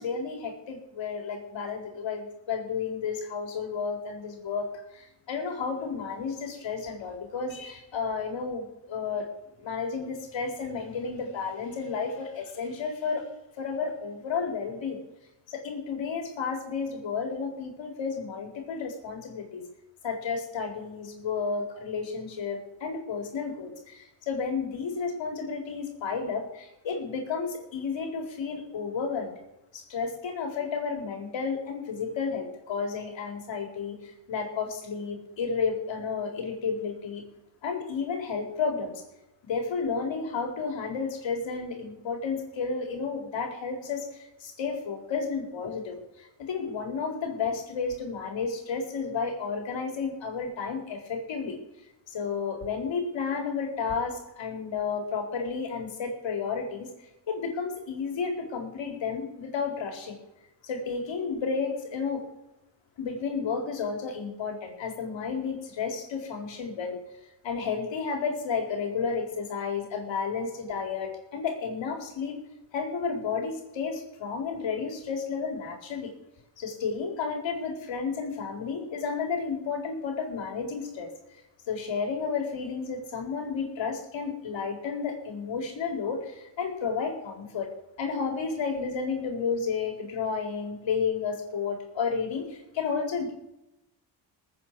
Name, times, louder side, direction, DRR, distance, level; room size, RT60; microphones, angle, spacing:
voice 1, 0.0-4.7 4.9-9.3 9.6-13.2 13.6-15.0 15.5-19.6 20.0-29.3 29.7-34.0 34.3-37.2 37.6-38.9 39.4-44.1 44.4-46.0 46.4-51.6 52.1-56.9 57.3-60.2 60.6-62.2 63.0-67.0 67.4-72.4 72.7-76.1 76.6-81.1 81.7-87.7 88.0-93.3, left 5 dB, 70° left, 1 dB, 4.3 m, -32 dB
20.5 x 9.1 x 4.8 m, 0.92 s
supercardioid pair, 70°, 47 cm